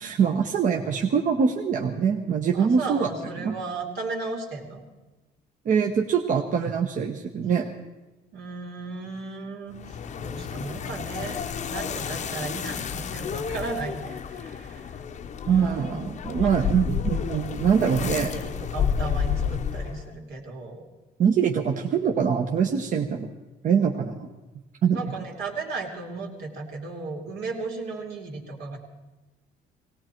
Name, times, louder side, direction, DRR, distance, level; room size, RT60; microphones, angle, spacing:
voice 1, 0.0-3.1 3.4-3.5 5.6-7.7 15.5-18.3 21.2-23.3 23.6-24.3 24.8-25.1, right 7 dB, 50° right, 2 dB, 1.1 m, -23 dB
voice 2, 2.5-4.8 8.3-15.0 15.4-16.1 16.4-16.5 18.0-20.8 24.9-28.8, right 3 dB, 75° right, 1 dB, 2.9 m, -35 dB
sound 1, 9.7-20.1, left 7 dB, 45° left, 0.7 m, -31 dB
18.0 x 18.0 x 4.5 m, 1.1 s
cardioid pair, 110°, 17 cm